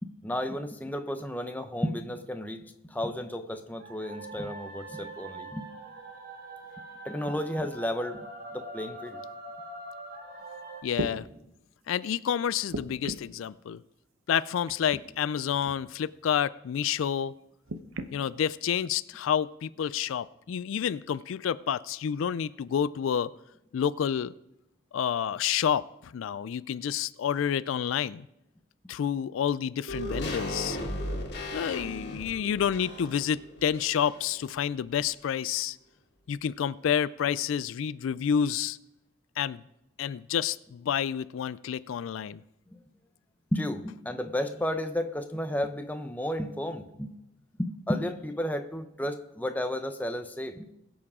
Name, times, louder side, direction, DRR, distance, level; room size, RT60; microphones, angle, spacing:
voice 1, 0.0-5.6 7.0-8.2 8.5-9.2 42.7-42.8 43.5-47.1 47.6-50.7, left 1 dB, 10° left, 7 dB, 0.7 m, -33 dB
sound 1, 3.8-10.8, right 2 dB, 50° right, 1.5 m, -43 dB
sound 2, 10.4-10.5 10.9-11.2 12.7-13.4 14.7-15.0 15.6-15.8 17.7-18.1 19.0-19.1, right 1 dB, 85° right, 0.8 m, -36 dB
voice 2, 10.8-11.3 11.9-13.8 14.3-17.3 18.1-23.3 23.7-24.3 24.9-28.3 28.9-30.8 31.5-35.8 36.3-38.8 39.4-39.6 40.0-42.4, left 8 dB, 75° left, 18 dB, 0.3 m, -29 dB
sound 3, 29.9-34.4 34.6-34.7, left 1 dB, 50° left, 2.2 m, -36 dB
21.5 x 7.2 x 3.7 m, 0.87 s
head